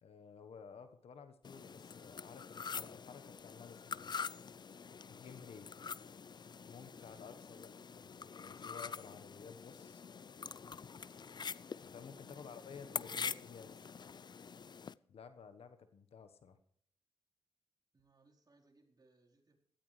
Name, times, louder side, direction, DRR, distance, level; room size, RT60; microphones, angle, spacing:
voice 1, 0.0-4.2 5.1-5.7 6.7-7.7 8.0-10.0 11.8-13.9 15.1-16.6, left 6 dB, 75° left, 9 dB, 1.3 m, -54 dB
sound 1, 1.4-14.9, left 6 dB, 45° left, 0.4 m, -46 dB
voice 2, 7.4-8.0 17.9-19.6, right 3 dB, 40° right, -1 dB, 4.3 m, -70 dB
17.0 x 13.5 x 3.3 m, 0.65 s
cardioid pair, 50°, 10 cm